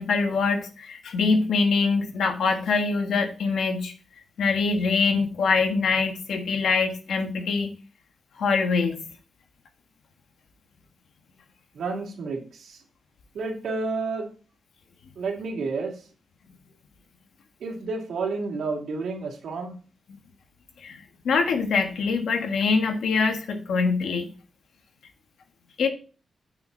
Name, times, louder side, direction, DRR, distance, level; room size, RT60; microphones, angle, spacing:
voice 1, 0.0-3.9 4.4-7.7 8.4-9.0 20.8-24.3 25.8-25.9, left 4 dB, 85° left, 5 dB, 1.5 m, -24 dB
voice 2, 11.7-12.8 13.3-14.3 15.2-16.0 17.6-19.8, right 4 dB, 85° right, 1 dB, 2.4 m, -30 dB
9.1 x 6.0 x 3.9 m, 0.38 s
wide cardioid pair, 130°, 0 cm